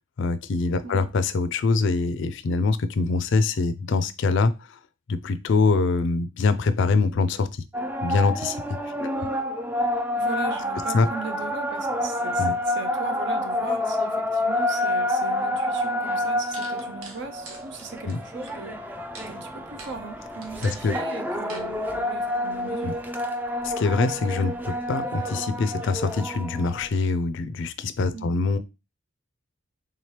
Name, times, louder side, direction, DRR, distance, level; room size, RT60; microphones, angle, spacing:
voice 1, 0.2-4.8 5.1-7.5 8.0-9.2 10.9-11.1 12.4-12.5 18.0-18.2 20.6-21.0 22.8-22.9 23.6-28.6, left 4 dB, 60° left, 0.4 m, -24 dB
sound 1, 7.7-26.9, left 1 dB, 10° right, 0.4 m, -28 dB
voice 2, 9.0-9.3 10.1-23.0 28.1-28.3, right 3 dB, 55° right, 0.6 m, -38 dB
sound 2, 15.8-15.9 16.5-18.5 19.1-19.3 19.8-20.0 20.4-20.9 21.5-21.7, right 3 dB, 85° right, 1.0 m, -43 dB
3.5 x 2.9 x 3.2 m
head